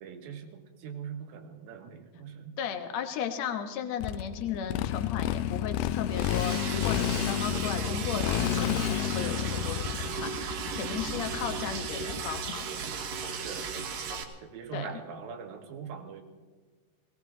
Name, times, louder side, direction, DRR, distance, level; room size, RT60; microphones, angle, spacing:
voice 1, 0.0-2.5 13.4-13.8 14.4-16.2, right 7 dB, 85° right, 6 dB, 3.2 m, -42 dB
voice 2, 2.6-12.7 13.1-13.4 14.7-15.0, left 8 dB, 60° left, 6 dB, 2.1 m, -35 dB
Motorcycle, 4.0-12.6, left 12 dB, 90° left, 2.4 m, -31 dB
Liquid, 6.1-14.2, right 6 dB, 60° right, 2.2 m, -36 dB
18.5 x 18.0 x 3.9 m, 1.4 s
omnidirectional pair, 4.1 m